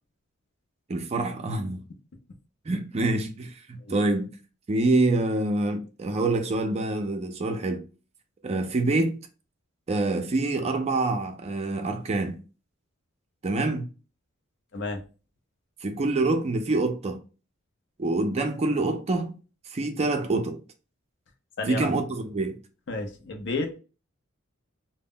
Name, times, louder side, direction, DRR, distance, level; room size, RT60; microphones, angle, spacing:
voice 1, 0.9-1.8 2.7-4.4 4.7-7.9 8.4-9.2 9.9-12.4 13.4-13.9 15.8-17.2 18.0-19.3 19.7-20.6 21.7-22.6, right 2 dB, 30° right, 0.4 m, -26 dB
voice 2, 22.9-23.7, left 3 dB, 60° left, 0.6 m, -31 dB
2.1 x 2.0 x 3.6 m
head